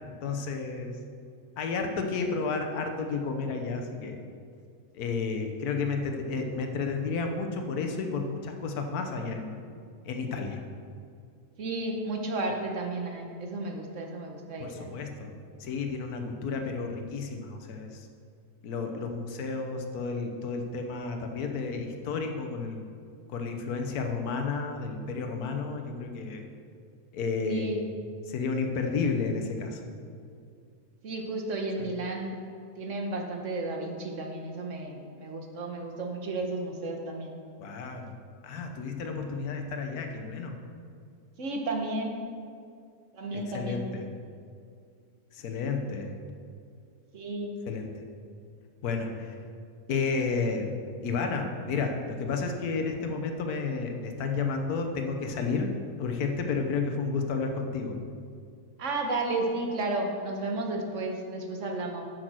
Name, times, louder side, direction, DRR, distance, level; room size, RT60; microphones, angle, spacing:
voice 1, 0.1-0.9 1.6-4.2 4.9-9.6 10.0-10.6 14.6-15.3 15.6-18.1 18.6-22.8 23.3-26.4 27.1-27.7 28.3-29.8 31.8-31.9 37.6-38.1 38.4-40.6 43.3-44.0 45.3-46.1 47.7-47.9 48.8-49.4 49.9-50.7 51.0-55.7 56.0-58.0, left 4 dB, 75° left, 4 dB, 1.4 m, -31 dB
voice 2, 11.6-15.0 27.4-27.8 31.0-32.4 32.8-37.4 41.4-42.3 43.1-43.9 47.1-47.6 58.8-62.0, right 2 dB, 55° right, 2 dB, 1.4 m, -33 dB
8.3 x 6.5 x 6.1 m, 2.3 s
omnidirectional pair, 1.6 m